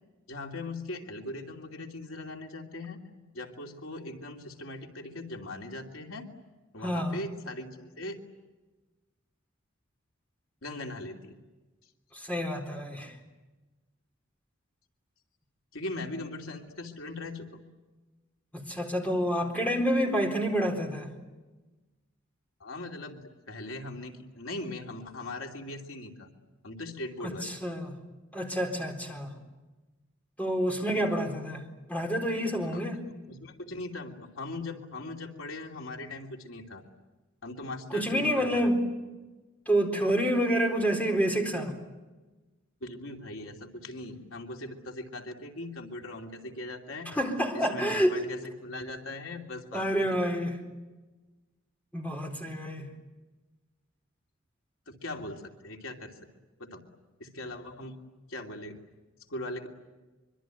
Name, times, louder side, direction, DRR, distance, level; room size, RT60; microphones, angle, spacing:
voice 1, 0.3-3.0 3.3-6.3 6.7-8.2 10.6-11.4 15.7-17.6 22.6-23.2 23.5-26.3 26.6-27.6 32.7-32.8 33.3-36.8 37.4-38.7 42.8-47.1 47.5-50.2 54.9-56.2 56.6-56.8 57.2-58.0 58.3-58.8 59.3-59.7, left 2 dB, 85° left, 2 dB, 3.0 m, -40 dB
voice 2, 6.8-7.2 12.1-13.1 18.5-21.1 27.2-28.0 28.3-29.3 30.4-31.6 31.9-33.0 37.9-38.8 39.7-41.8 47.1-48.2 49.7-50.6 51.9-52.9, equal, 10° left, 3 dB, 4.1 m, -28 dB
25.0 x 24.5 x 9.3 m, 1.2 s
head